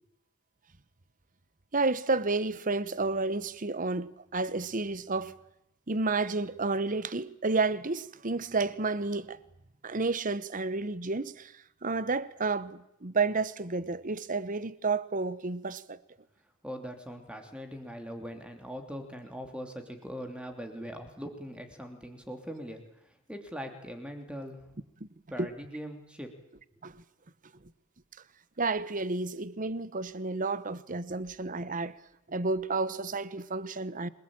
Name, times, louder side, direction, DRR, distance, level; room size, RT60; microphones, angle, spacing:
voice 1, 1.7-5.4 5.9-9.4 9.8-11.5 11.8-16.0 25.0-25.1 25.4-25.5 26.8-27.0 28.6-32.0 32.3-34.1, right 3 dB, 35° right, 0.9 m, -31 dB
voice 2, 16.6-24.6 25.3-26.3, equal, 5° right, 3.0 m, -41 dB
27.0 x 19.5 x 8.8 m
head